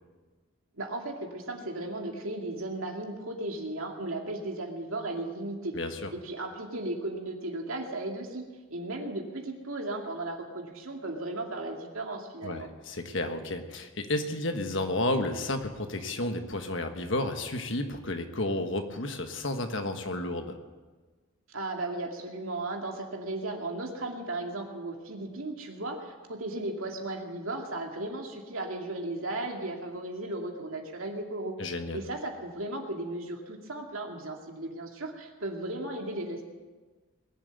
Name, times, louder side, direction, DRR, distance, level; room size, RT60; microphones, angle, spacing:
voice 1, 0.8-5.7 6.2-8.4 8.7-12.7 21.5-31.6 31.9-36.4, right 2 dB, 75° right, 2 dB, 2.4 m, -35 dB
voice 2, 5.7-6.1 12.4-20.6 31.6-32.0, left 2 dB, 60° left, 6 dB, 1.4 m, -32 dB
20.5 x 7.7 x 9.2 m, 1.3 s
head